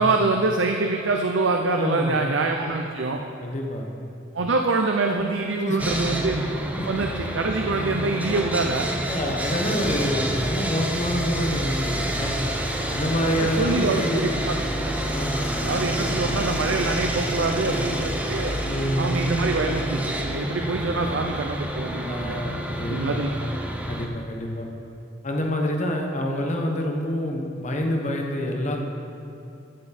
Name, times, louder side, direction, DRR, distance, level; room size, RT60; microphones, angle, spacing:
voice 1, 0.0-3.2 4.3-6.4 6.9-8.9 13.4-14.5 14.8-14.9 15.6-18.6 19.0-22.4 22.8-23.3, right 3 dB, 90° right, 3 dB, 0.6 m, -25 dB
voice 2, 1.8-2.2 3.4-3.9 5.7-6.0 6.8-6.9 9.0-12.4 12.9-14.3 15.1-16.2 18.6-19.2 22.0-23.1 23.9-24.7 25.2-28.8, left 1 dB, 40° left, 1 dB, 1.2 m, -27 dB
Sawing, 5.8-24.1, right 1 dB, 10° right, 0.7 m, -28 dB
12.5 x 7.9 x 4.3 m, 2.7 s
head